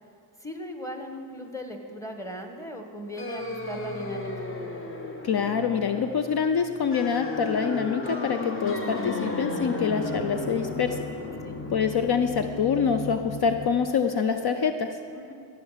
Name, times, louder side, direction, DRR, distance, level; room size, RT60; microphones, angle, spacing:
voice 1, 0.4-4.3 11.4-11.6 15.1-15.3, equal, 5° left, 4 dB, 1.3 m, -38 dB
sound 1, 3.2-13.7, left 2 dB, 30° left, 1.1 m, -34 dB
voice 2, 5.2-11.0 11.7-14.9, left 6 dB, 55° left, 7 dB, 0.6 m, -25 dB
15.0 x 5.8 x 7.4 m, 2.5 s
cardioid pair, 70°, 46 cm